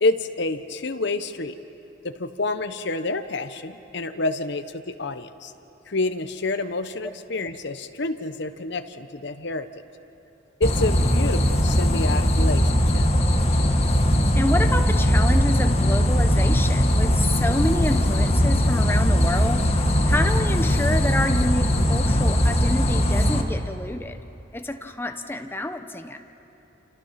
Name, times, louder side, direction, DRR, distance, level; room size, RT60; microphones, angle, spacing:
voice 1, 0.0-1.5 2.0-5.5 5.9-9.7 10.6-13.1, left 2 dB, 60° left, 9 dB, 1.0 m, -28 dB
sound 1, 10.6-23.4, equal, 30° left, 1.6 m, -20 dB
voice 2, 14.3-19.7 20.1-24.2 24.5-26.2, left 1 dB, 10° left, 6 dB, 1.0 m, -28 dB
28.5 x 27.5 x 5.9 m, 2.9 s
head